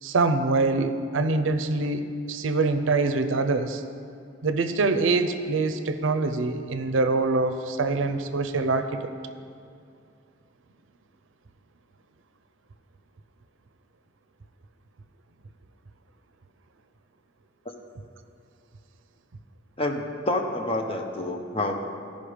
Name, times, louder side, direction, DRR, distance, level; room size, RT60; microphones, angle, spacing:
voice 1, 0.0-3.8 4.4-9.1, right 3 dB, 75° right, 9 dB, 0.5 m, -24 dB
voice 2, 19.8-21.7, left 2 dB, 30° left, 3 dB, 0.8 m, -28 dB
14.0 x 5.3 x 5.0 m, 2.4 s
head